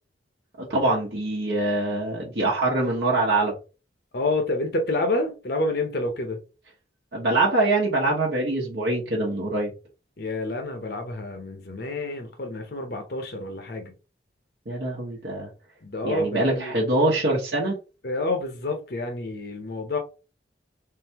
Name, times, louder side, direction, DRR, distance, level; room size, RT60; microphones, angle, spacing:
voice 1, 0.6-3.5 7.1-9.7 14.7-15.5 16.0-17.8, right 2 dB, 65° right, 1.0 m, -24 dB
voice 2, 4.1-6.4 10.2-13.9 15.8-16.9 18.0-20.0, left 2 dB, 55° left, 0.7 m, -28 dB
3.8 x 3.4 x 2.9 m
head